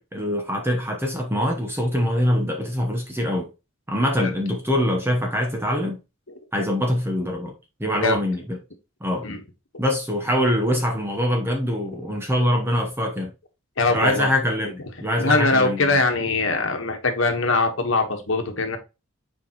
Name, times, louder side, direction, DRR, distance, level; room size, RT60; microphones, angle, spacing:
voice 1, 0.0-3.5 3.9-6.0 6.5-7.5 7.8-8.6 9.0-9.3 9.8-13.3 13.9-16.0, equal, 10° right, 0.9 m, -24 dB
voice 2, 13.8-14.3 15.2-18.8, left 3 dB, 65° left, 1.4 m, -22 dB
6.9 x 4.6 x 3.0 m
head